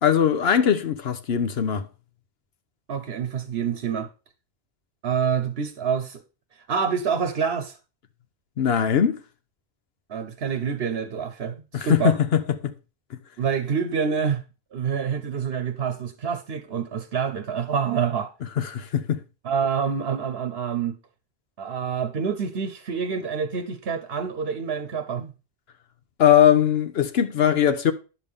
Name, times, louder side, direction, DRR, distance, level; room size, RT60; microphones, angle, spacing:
voice 1, 0.0-1.9 8.6-9.2 11.7-12.7 18.6-19.2 26.2-27.9, left 9 dB, 75° left, 1.0 m, -20 dB
voice 2, 2.9-4.1 5.0-6.2 6.7-7.8 10.1-12.2 13.4-14.4 14.7-18.3 19.4-21.0 21.6-25.3, right 6 dB, 70° right, 1.0 m, -27 dB
10.0 x 6.9 x 3.5 m
omnidirectional pair, 1.1 m